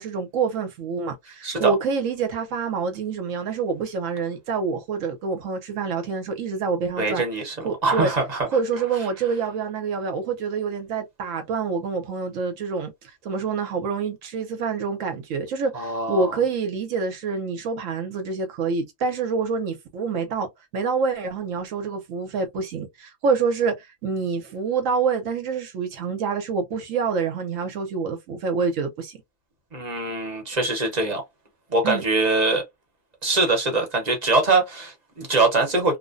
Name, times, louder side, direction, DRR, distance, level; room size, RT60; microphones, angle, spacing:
voice 1, 0.0-7.2 7.6-8.1 8.5-12.9 13.2-20.5 20.7-29.2 31.8-32.0, right 5 dB, 75° right, 1.1 m, -26 dB
voice 2, 1.4-1.7 7.0-7.6 7.8-8.5 15.7-16.3 29.7-31.2 31.7-32.6 33.2-36.0, right 3 dB, 35° right, 1.0 m, -23 dB
3.0 x 2.1 x 2.5 m
omnidirectional pair, 1.4 m